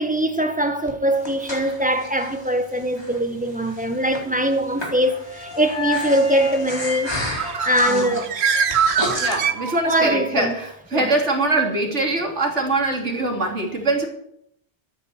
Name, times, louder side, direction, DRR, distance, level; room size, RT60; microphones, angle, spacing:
voice 1, 0.0-7.2 7.6-8.3 9.8-10.5 10.9-11.1, right 1 dB, 5° right, 1.6 m, -22 dB
Breathing, 0.9-9.4, left 1 dB, 20° left, 4.1 m, -34 dB
sound 1, 4.9-9.2, left 3 dB, 50° left, 2.2 m, -33 dB
Bird, 7.1-10.2, right 6 dB, 65° right, 1.2 m, -23 dB
voice 2, 7.9-8.2 9.2-14.1, right 2 dB, 85° right, 3.5 m, -23 dB
14.0 x 9.9 x 7.8 m
omnidirectional pair, 1.2 m